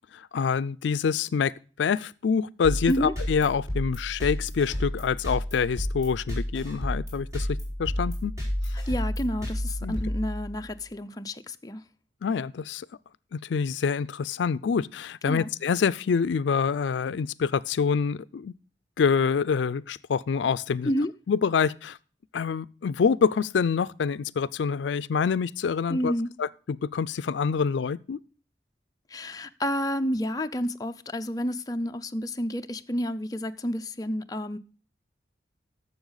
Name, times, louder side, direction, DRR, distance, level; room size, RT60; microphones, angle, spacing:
voice 1, 0.1-1.5 1.8-8.3 9.8-10.0 12.2-12.9 13.3-18.5 19.0-20.9 21.3-22.0 22.3-26.1 26.4-28.2, left 6 dB, 80° left, 0.4 m, -26 dB
sound 1, 2.6-10.8, equal, 15° right, 4.4 m, -31 dB
voice 2, 8.7-11.8 15.2-15.5 20.8-21.1 25.9-26.3 29.1-34.6, equal, 20° left, 0.5 m, -30 dB
12.0 x 7.1 x 3.9 m
head